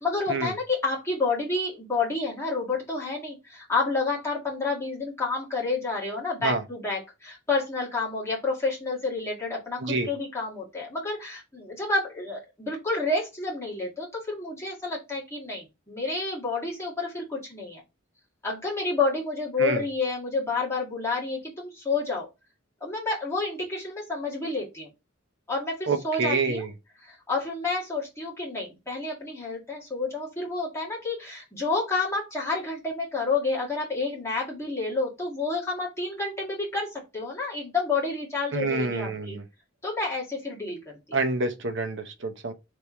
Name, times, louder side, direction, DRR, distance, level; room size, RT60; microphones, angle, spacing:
voice 1, 0.0-17.8 18.4-22.3 22.8-24.9 25.5-26.7 27.0-39.4 39.8-40.8 41.1-41.2, left 3 dB, 15° left, 1.9 m, -29 dB
voice 2, 25.9-26.7 38.5-39.4 41.1-42.5, right 3 dB, 65° right, 0.8 m, -27 dB
3.4 x 3.4 x 4.3 m
head